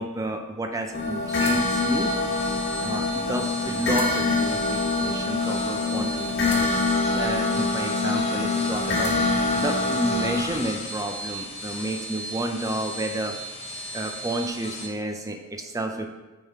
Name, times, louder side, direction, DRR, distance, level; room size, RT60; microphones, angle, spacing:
voice 1, 0.0-2.1 2.8-6.8 7.1-9.1 9.5-13.4 13.9-16.1, right 1 dB, 15° right, 4 dB, 0.5 m, -30 dB
sound 1, 0.9-10.4, left 3 dB, 50° left, 1.2 m, -25 dB
sound 2, 1.1-14.9, equal, 30° left, 0.9 m, -35 dB
8.8 x 3.7 x 4.6 m, 1.1 s
head